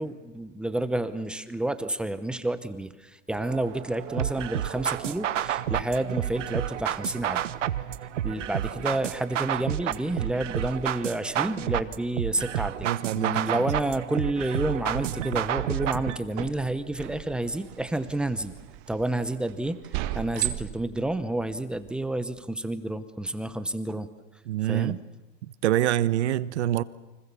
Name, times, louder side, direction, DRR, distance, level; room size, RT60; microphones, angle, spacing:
voice 1, 0.0-7.4 8.2-12.9 13.2-18.5 18.9-19.8 20.1-24.1 24.7-25.0, right 1 dB, 5° right, 0.9 m, -30 dB
sound 1, 3.3-22.2, right 15 dB, 40° right, 1.6 m, -41 dB
sound 2, 4.2-16.2, right 11 dB, 85° right, 1.3 m, -30 dB
voice 2, 12.8-13.4 24.5-25.0 25.6-26.8, right 13 dB, 65° right, 1.2 m, -25 dB
30.0 x 25.0 x 7.1 m
hypercardioid pair, 145°, 36 cm